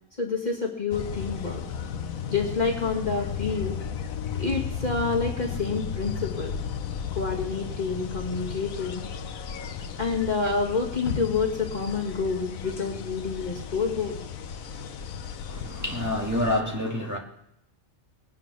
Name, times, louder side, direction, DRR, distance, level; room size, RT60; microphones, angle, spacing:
voice 1, 0.2-1.6 2.3-3.8 4.4-6.5 7.1-9.0 10.0-14.2, left 4 dB, 30° left, 2.2 m, -28 dB
sound 1, 0.9-16.6, left 7 dB, 85° left, 1.2 m, -34 dB
voice 2, 15.5-17.2, left 1 dB, 10° right, 2.1 m, -28 dB
20.5 x 9.6 x 6.2 m
omnidirectional pair, 1.4 m